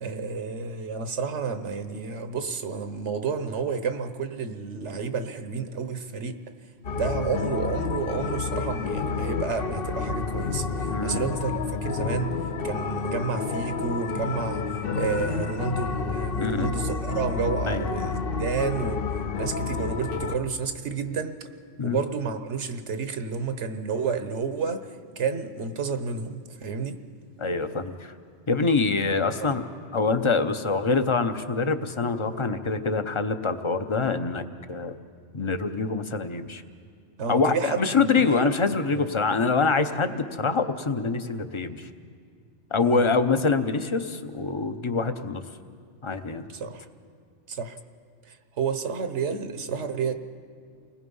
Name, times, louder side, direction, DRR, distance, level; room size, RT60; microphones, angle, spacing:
voice 1, 0.0-6.4 6.9-19.0 19.4-21.4 21.8-27.0 37.2-37.9 38.2-38.5 38.9-39.1 42.8-43.0 46.5-46.8 47.5-47.8 48.2-50.1, right 5 dB, 75° right, 9 dB, 1.3 m, -30 dB
sound 1, 6.8-20.4, left 5 dB, 55° left, 1.0 m, -30 dB
voice 2, 10.9-11.3 16.4-16.7 17.7-17.9 21.8-22.0 27.4-28.1 28.5-29.6 29.9-34.4 34.7-34.9 35.3-36.6 37.3-41.9 42.7-45.4 46.0-46.5, left 4 dB, 30° left, 9 dB, 0.8 m, -25 dB
29.0 x 20.0 x 5.5 m, 2.2 s
omnidirectional pair, 1.2 m